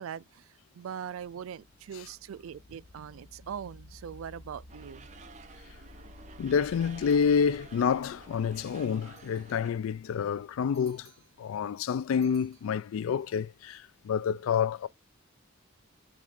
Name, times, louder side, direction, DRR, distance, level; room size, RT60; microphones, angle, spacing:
voice 1, 0.0-5.1, right 8 dB, 90° right, 0.3 m, -41 dB
sound 1, 1.1-9.9, left 2 dB, 45° left, 0.7 m, -54 dB
sound 2, 4.7-9.7, right 4 dB, 35° right, 0.8 m, -51 dB
voice 2, 6.4-11.1 11.4-14.9, left 6 dB, 80° left, 0.3 m, -28 dB
sound 3, 7.1-7.9 9.0-9.8 10.7-11.5 12.2-13.2, right 6 dB, 15° right, 1.8 m, -63 dB
5.9 x 2.5 x 3.6 m
head